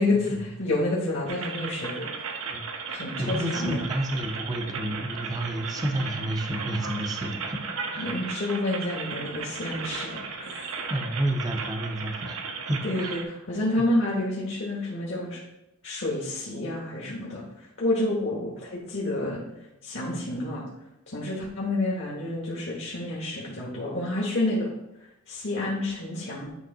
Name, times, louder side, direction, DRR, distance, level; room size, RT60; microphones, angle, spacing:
voice 1, 0.0-2.4 2.9-3.8 8.0-10.8 12.8-15.4 15.8-19.4 19.8-20.6 21.1-24.7 25.3-26.5, left 2 dB, 55° left, -4 dB, 1.2 m, -29 dB
sound 1, 1.3-13.2, right 5 dB, 70° right, 0.8 m, -35 dB
voice 2, 3.2-8.1 10.9-13.2, right 1 dB, 15° right, 3 dB, 0.6 m, -30 dB
9.3 x 3.1 x 3.9 m, 0.91 s
head